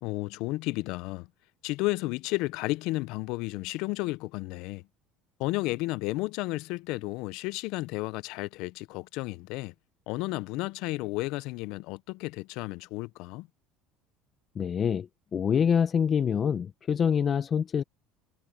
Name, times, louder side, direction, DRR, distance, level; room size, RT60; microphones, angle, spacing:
voice 1, 0.0-1.3 1.6-4.8 5.4-9.7 10.1-13.5, left 21 dB, 70° left, 0.7 m, -32 dB
voice 2, 14.5-17.8, left 7 dB, 40° left, 1.1 m, -26 dB
supercardioid pair, 85°, 0 cm